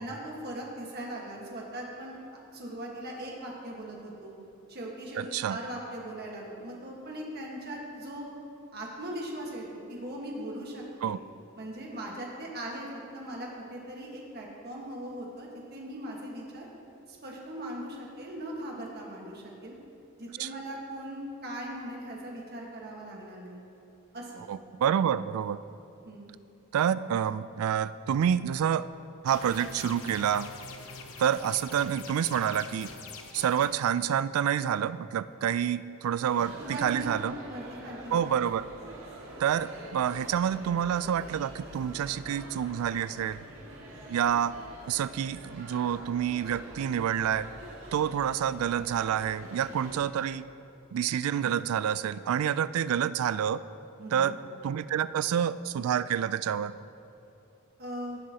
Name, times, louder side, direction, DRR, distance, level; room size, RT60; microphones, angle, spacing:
voice 1, 0.0-2.2 2.5-4.3 4.7-8.3 8.7-11.1 11.6-12.9 13.1-16.7 17.1-19.7 20.2-23.6 24.1-24.5 26.0-26.3 36.6-38.2 54.0-54.3 57.8-58.2, right 1 dB, 50° right, -2 dB, 1.5 m, -39 dB
voice 2, 5.2-5.6 11.0-11.2 20.4-20.5 24.5-25.6 26.7-28.9 29.2-30.5 31.2-32.9 33.3-37.3 38.1-38.7 39.4-43.4 44.1-44.5 44.9-47.5 47.9-50.4 50.9-53.6 54.1-54.4 54.6-56.7, right 9 dB, 90° right, 16 dB, 0.3 m, -28 dB
sound 1, 29.3-33.7, left 4 dB, 80° left, 0.9 m, -44 dB
sound 2, 36.2-50.0, right 1 dB, 70° right, 1.8 m, -46 dB
16.5 x 7.8 x 2.9 m, 2.7 s
head